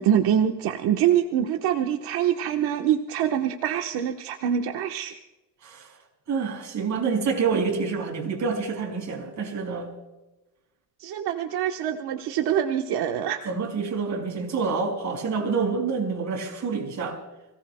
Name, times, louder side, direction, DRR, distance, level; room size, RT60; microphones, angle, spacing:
voice 1, 0.0-5.2 11.0-13.4, right 9 dB, 75° right, 3 dB, 1.2 m, -25 dB
voice 2, 5.6-5.9 6.3-9.9 13.4-17.2, right 5 dB, 45° right, 1 dB, 5.1 m, -27 dB
29.5 x 18.5 x 2.2 m, 1.1 s
cardioid pair, 120°, 38 cm